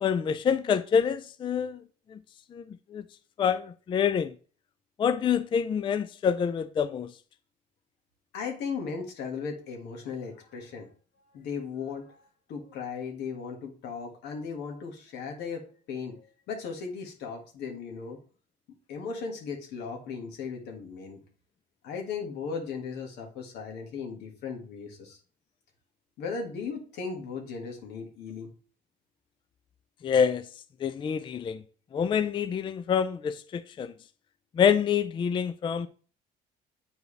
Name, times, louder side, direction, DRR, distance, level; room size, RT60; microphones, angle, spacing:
voice 1, 0.0-1.8 2.1-2.2 2.5-2.6 2.9-3.0 3.4-4.3 5.0-7.1 30.0-30.5 30.8-31.6 31.9-33.9 34.6-35.9, left 7 dB, 30° left, 0.3 m, -26 dB
voice 2, 8.3-10.9 11.3-12.2 12.5-18.2 18.9-21.2 21.8-25.2 26.2-28.5, left 5 dB, 80° left, 1.7 m, -37 dB
7.9 x 4.7 x 3.3 m
cardioid pair, 110°, 17 cm